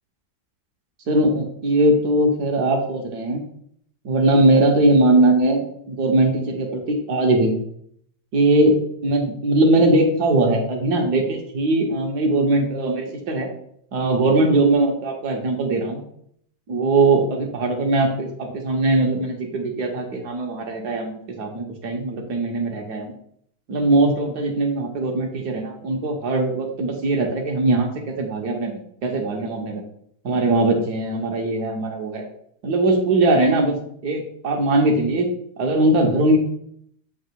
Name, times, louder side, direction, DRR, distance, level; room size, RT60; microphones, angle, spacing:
voice 1, 1.1-3.4 4.0-7.5 8.3-8.8 9.0-13.5 13.9-16.0 16.7-23.1 23.7-29.8 30.2-32.2 32.6-33.8 34.0-35.3 35.6-36.4, right 2 dB, 65° right, 1 dB, 1.6 m, -20 dB
7.8 x 3.0 x 4.5 m, 0.67 s
omnidirectional pair, 1.9 m